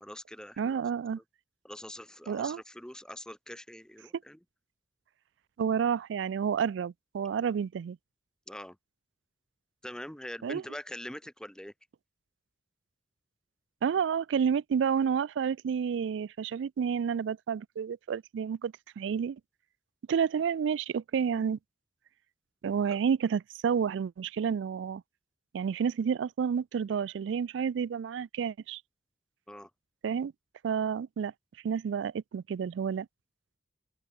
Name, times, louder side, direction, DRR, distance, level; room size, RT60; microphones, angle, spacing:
voice 1, 0.0-0.8 1.6-4.4 8.5-8.8 9.8-11.7 22.9-23.0 29.5-29.7, left 1 dB, 5° left, 0.9 m, -43 dB
voice 2, 0.6-1.2 2.3-2.6 5.6-8.0 10.4-10.6 13.8-19.4 20.1-21.6 22.6-25.0 25.5-28.8 30.0-30.3 30.6-31.3 31.6-33.1, right 7 dB, 85° right, 0.3 m, -30 dB
open air
head